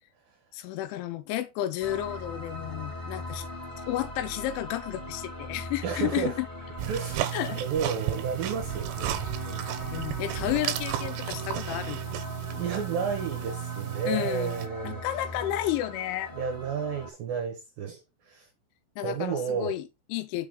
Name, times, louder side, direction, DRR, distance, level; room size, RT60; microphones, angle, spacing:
voice 1, 0.5-3.5 3.8-6.5 7.3-7.6 9.9-12.0 14.1-14.6 14.8-16.3 19.0-20.5, left 13 dB, 80° left, 3.0 m, -32 dB
sound 1, 1.8-17.1, left 1 dB, 15° left, 1.9 m, -40 dB
voice 2, 5.8-6.4 6.9-7.3 7.6-9.2 9.5-9.9 12.5-15.0 16.3-18.5 19.0-19.8, right 6 dB, 70° right, 2.2 m, -32 dB
sound 2, 6.8-14.7, right 13 dB, 90° right, 3.6 m, -33 dB
6.8 x 6.1 x 3.7 m
omnidirectional pair, 5.7 m